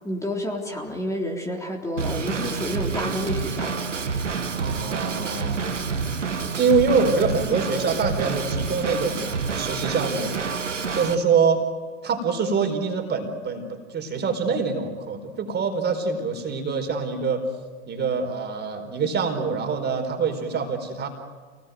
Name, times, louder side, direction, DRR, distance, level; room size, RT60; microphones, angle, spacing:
voice 1, 0.0-3.7, left 1 dB, 10° left, 0 dB, 3.8 m, -29 dB
Drum kit / Drum, 2.0-11.1, right 5 dB, 85° right, 1.9 m, -28 dB
voice 2, 4.5-5.6 6.6-9.3 9.5-10.4 10.9-11.6 12.0-17.4 17.9-21.1, right 5 dB, 30° right, 5 dB, 4.8 m, -25 dB
28.5 x 19.5 x 9.4 m, 1.5 s
hypercardioid pair, 90°, 36 cm